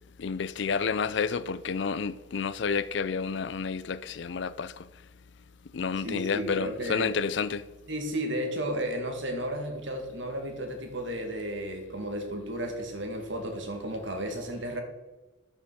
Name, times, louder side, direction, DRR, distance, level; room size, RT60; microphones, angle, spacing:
voice 1, 0.2-4.7 5.7-7.6, left 5 dB, 60° left, 0.4 m, -30 dB
voice 2, 6.0-7.1 7.9-14.8, equal, 65° right, 2.3 m, -33 dB
11.0 x 8.6 x 6.3 m
head